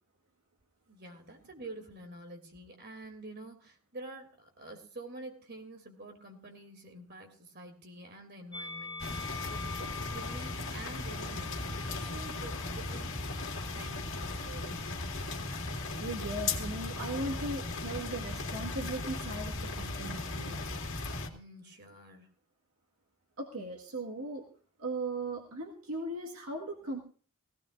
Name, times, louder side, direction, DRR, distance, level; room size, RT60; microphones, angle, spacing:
voice 1, 0.9-13.2 13.7-15.0 21.3-22.3, right 2 dB, 50° right, 4 dB, 3.0 m, -48 dB
Musical instrument, 8.5-14.9 15.8-16.8, left 4 dB, 20° left, 5.5 m, -47 dB
sound 1, 9.0-21.3, left 3 dB, 60° left, 2.2 m, -37 dB
voice 2, 15.6-20.6 23.4-24.5 24.8-27.0, right 2 dB, 70° right, 1 dB, 1.8 m, -38 dB
18.0 x 17.0 x 2.6 m, 0.42 s
head